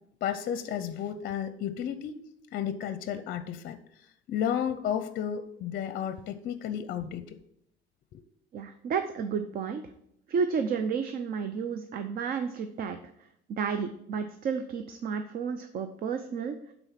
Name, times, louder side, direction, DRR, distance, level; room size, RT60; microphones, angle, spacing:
voice 1, 0.2-2.2 2.5-7.3 8.1-8.2, left 9 dB, 50° left, 11 dB, 0.6 m, -33 dB
voice 2, 8.5-9.8 10.3-13.0 13.5-16.5, right 6 dB, 45° right, 8 dB, 0.6 m, -31 dB
9.0 x 4.1 x 5.7 m, 0.75 s
cardioid pair, 135°, 20 cm